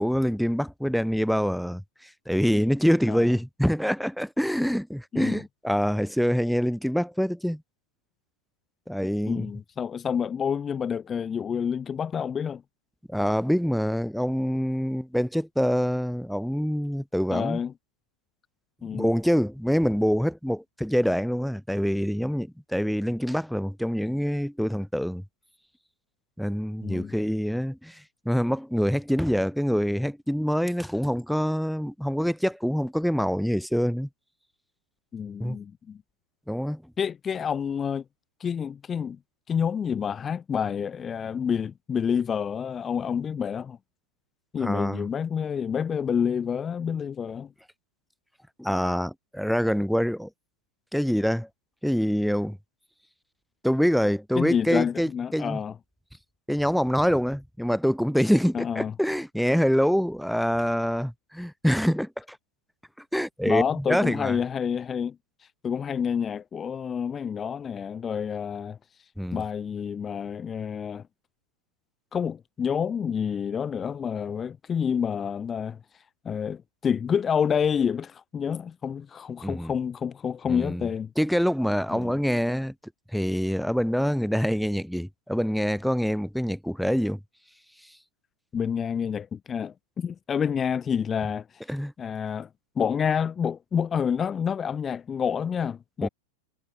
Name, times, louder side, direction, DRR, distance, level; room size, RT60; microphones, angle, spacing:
voice 1, 0.0-7.6 8.9-9.5 13.1-17.6 18.9-25.2 26.4-34.1 35.4-35.6 36.5-36.8 44.6-45.0 48.6-50.3 50.9-51.5 51.8-52.6 53.6-55.6 56.5-62.4 63.1-64.4 69.2-69.4 79.4-79.7 80.5-80.9 81.2-82.7 83.1-87.2 91.7-91.9 96.0-96.1, equal, ahead, 5.8 m, -25 dB
voice 2, 9.3-12.6 17.3-17.7 18.8-19.1 26.8-27.1 35.1-36.0 37.0-38.0 38.4-39.2 39.5-43.8 44.5-47.5 54.4-55.7 58.5-58.9 63.4-65.2 65.6-68.8 69.3-71.0 72.1-75.8 76.2-81.1 81.9-82.2 88.5-91.5 92.0-92.5 92.8-96.1, left 7 dB, 25° left, 4.6 m, -28 dB
hypercardioid pair, 120°, 0 cm